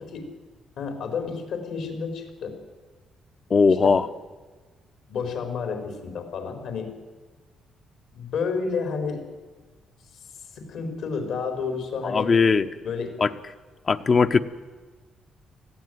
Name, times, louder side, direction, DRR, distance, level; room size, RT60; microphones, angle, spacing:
voice 1, 0.8-2.6 3.8-4.0 5.1-6.9 8.1-9.2 10.5-12.4 12.8-13.2, left 5 dB, 80° left, 6 dB, 4.3 m, -30 dB
voice 2, 3.5-4.1 12.0-12.7 13.2-13.3 13.9-14.4, left 5 dB, 40° left, 9 dB, 1.0 m, -19 dB
19.5 x 15.0 x 9.4 m, 1.4 s
cardioid pair, 90°, 0 cm